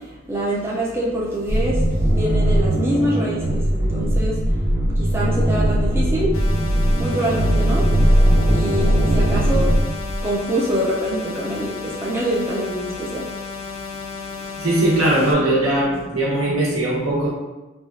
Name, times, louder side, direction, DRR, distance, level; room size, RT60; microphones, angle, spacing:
voice 1, 0.3-1.8 2.1-4.4 5.0-6.3 7.0-7.9 8.5-9.7 10.2-13.2, right 1 dB, 10° right, -5 dB, 0.3 m, -25 dB
sound 1, 1.5-10.3, right 1 dB, 40° right, 0.8 m, -19 dB
sound 2, 6.3-15.3, left 5 dB, 75° left, 0.4 m, -33 dB
voice 2, 14.6-17.3, right 1 dB, 80° right, -5 dB, 0.9 m, -20 dB
3.1 x 2.3 x 2.5 m, 1.1 s
head